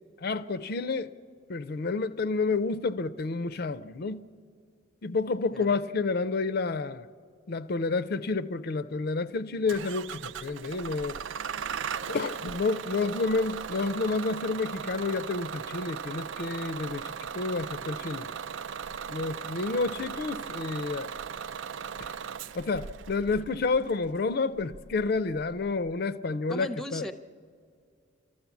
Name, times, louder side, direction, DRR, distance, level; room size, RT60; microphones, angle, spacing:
voice 1, 0.2-1.1 1.5-4.3 5.0-7.1 7.5-11.2 12.1-18.3 19.1-21.1 22.0-22.1 22.5-27.1, left 3 dB, 55° left, 0.4 m, -30 dB
Bus / Engine starting, 9.7-25.9, right 7 dB, 70° right, 0.4 m, -38 dB
voice 2, 26.5-27.1, left 1 dB, 5° left, 0.6 m, -37 dB
29.5 x 13.5 x 7.1 m
head